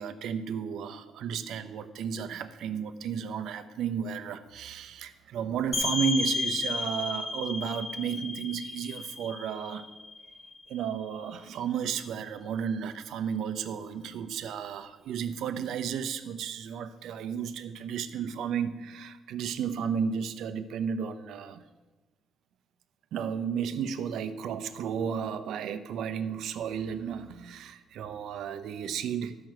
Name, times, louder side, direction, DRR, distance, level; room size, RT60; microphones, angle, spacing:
voice 1, 0.0-9.9 10.7-21.6 23.1-29.4, right 7 dB, 80° right, 11 dB, 0.8 m, -33 dB
sound 1, 5.7-11.2, left 2 dB, 40° left, 2.4 m, -33 dB
13.0 x 6.1 x 7.7 m, 1.2 s
cardioid pair, 90°, 0 cm